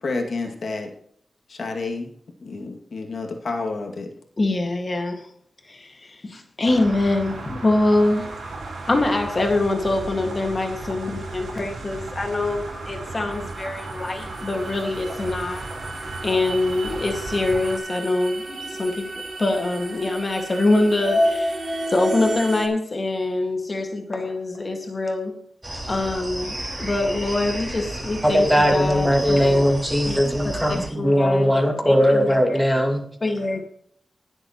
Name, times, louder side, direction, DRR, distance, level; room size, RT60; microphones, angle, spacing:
voice 1, 0.0-0.9 1.5-2.1 2.4-4.1, left 3 dB, 60° left, 2.4 m, -29 dB
voice 2, 4.4-5.3 5.7-8.4 8.9-15.7 16.2-21.6 21.9-25.4 25.9-29.7 30.0-30.2 30.4-32.7 33.2-33.6, left 2 dB, 40° left, 2.0 m, -24 dB
sound 1, 6.6-17.8, right 2 dB, 85° right, 4.2 m, -35 dB
sound 2, 13.3-22.7, equal, 45° right, 2.6 m, -30 dB
sound 3, 25.6-30.9, right 1 dB, 20° right, 4.8 m, -32 dB
voice 3, 28.2-33.0, equal, 5° right, 2.2 m, -19 dB
20.5 x 7.9 x 3.1 m
wide cardioid pair, 100°, 0 cm